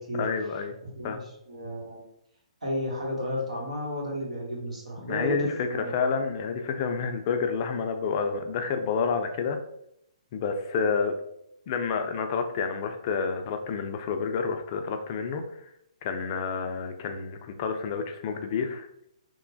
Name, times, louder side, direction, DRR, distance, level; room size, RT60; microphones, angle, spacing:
voice 1, 0.2-0.8 1.0-1.3 5.0-9.6 10.3-11.2 11.7-15.4 16.0-18.9, left 5 dB, 40° left, 6 dB, 0.3 m, -29 dB
voice 2, 1.5-2.0 2.6-5.9, equal, 80° right, -2 dB, 1.1 m, -32 dB
2.9 x 2.1 x 2.6 m, 0.75 s
figure-of-eight pair, 135°, 4 cm